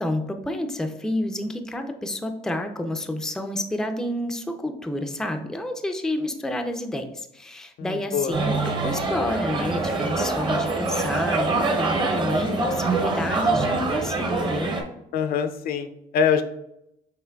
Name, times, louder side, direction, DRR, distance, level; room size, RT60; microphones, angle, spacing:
voice 1, 0.0-14.7, left 1 dB, 5° left, 6 dB, 0.4 m, -29 dB
voice 2, 7.8-8.3 15.1-15.9 16.1-16.4, left 7 dB, 65° left, 9 dB, 0.4 m, -23 dB
sound 1, 8.3-14.8, right 3 dB, 25° right, 0.7 m, -24 dB
5.7 x 3.6 x 2.3 m, 0.81 s
cardioid pair, 110°, 17 cm